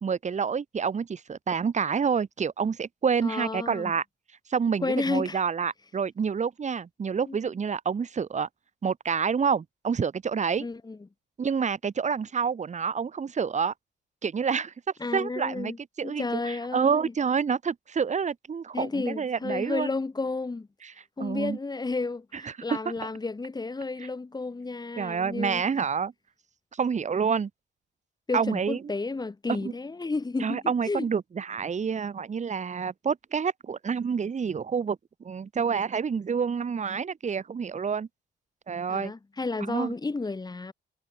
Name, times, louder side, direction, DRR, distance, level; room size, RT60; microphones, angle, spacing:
voice 1, 0.0-4.0 4.5-8.5 8.8-10.6 11.4-13.7 14.2-14.7 15.1-15.7 16.0-19.9 20.8-20.9 21.2-21.6 22.3-22.8 24.0-24.1 25.0-26.1 26.7-27.5 28.3-28.8 29.6-29.7 30.4-35.0 35.2-38.1 38.7-39.1 39.6-39.9, right 6 dB, 35° right, 1.5 m, -28 dB
voice 2, 3.2-3.9 4.8-5.4 7.3-7.4 10.6-11.0 15.0-15.8 16.0-17.1 18.7-20.7 21.2-25.6 28.3-31.0 38.9-40.7, left 3 dB, 20° left, 1.7 m, -32 dB
cardioid pair, 90°, 20 cm